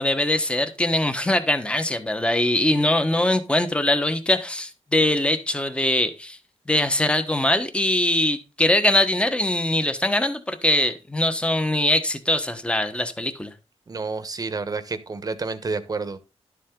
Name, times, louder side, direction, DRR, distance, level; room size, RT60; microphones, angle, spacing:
voice 1, 0.0-6.4 6.7-13.5, left 1 dB, 10° left, 1.2 m, -22 dB
voice 2, 13.9-16.2, right 4 dB, 35° right, 1.1 m, -29 dB
12.0 x 7.5 x 3.8 m
wide cardioid pair, 135°, 11 cm